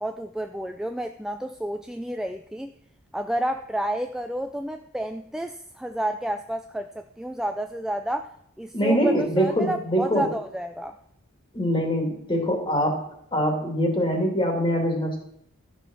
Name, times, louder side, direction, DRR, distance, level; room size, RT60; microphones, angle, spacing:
voice 1, 0.0-2.7 3.1-8.3 8.6-10.9, right 1 dB, ahead, 7 dB, 0.3 m, -30 dB
voice 2, 8.7-10.3 11.5-13.0 13.3-15.2, equal, 25° left, 2 dB, 2.5 m, -23 dB
12.5 x 6.3 x 6.1 m, 0.70 s
head